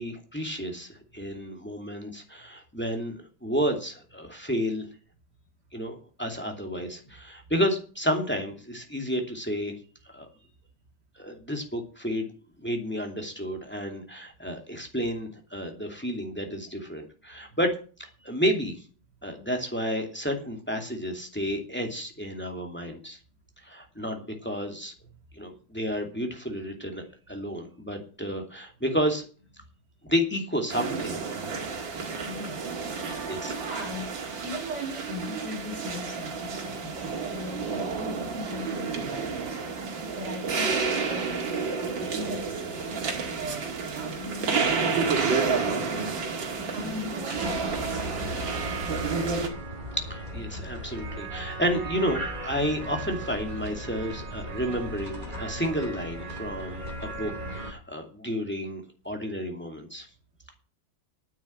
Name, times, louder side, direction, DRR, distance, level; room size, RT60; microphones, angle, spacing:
voice 1, 0.0-4.9 5.7-9.7 10.1-10.3 11.2-12.3 12.6-18.7 19.2-23.2 23.6-24.9 25.3-29.2 30.0-31.2 32.0-32.5 33.2-33.8 49.9-60.1, equal, 5° left, 2 dB, 2.5 m, -31 dB
sound 1, 30.7-49.5, right 5 dB, 90° right, 2.7 m, -30 dB
voice 2, 32.2-39.6 40.1-40.7 41.1-46.2 46.7-48.4, left 1 dB, 60° right, 1 dB, 2.7 m, -39 dB
sound 2, 47.4-57.7, right 1 dB, 25° right, 2.9 m, -36 dB
9.9 x 7.2 x 8.7 m, 0.38 s
omnidirectional pair, 2.0 m